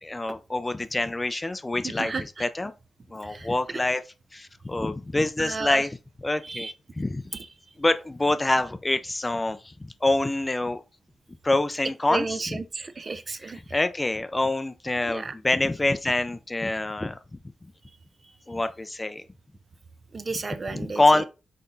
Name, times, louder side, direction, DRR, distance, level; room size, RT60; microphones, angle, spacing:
voice 1, 0.0-2.1 2.4-2.7 3.1-4.0 4.3-7.2 7.8-10.8 11.4-12.6 13.4-17.2 18.5-19.2 20.7-21.2, left 2 dB, 15° left, 0.5 m, -26 dB
voice 2, 1.8-2.4 3.2-3.5 5.4-5.8 6.4-6.7 7.3-7.5 12.1-13.6 15.0-15.3 20.1-21.2, right 4 dB, 35° right, 0.6 m, -33 dB
5.8 x 4.2 x 4.0 m
wide cardioid pair, 120°, 0 cm